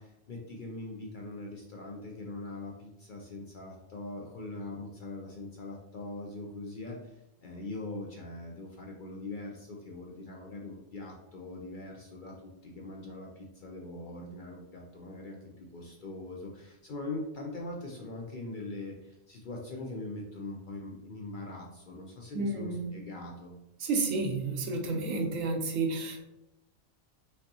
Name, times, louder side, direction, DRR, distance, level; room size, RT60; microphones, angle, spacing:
voice 1, 0.0-23.6, left 2 dB, 55° left, -1 dB, 0.6 m, -42 dB
voice 2, 22.3-22.9 23.8-26.2, right 3 dB, 85° right, 3 dB, 1.1 m, -31 dB
5.1 x 2.7 x 2.7 m, 0.90 s
omnidirectional pair, 1.3 m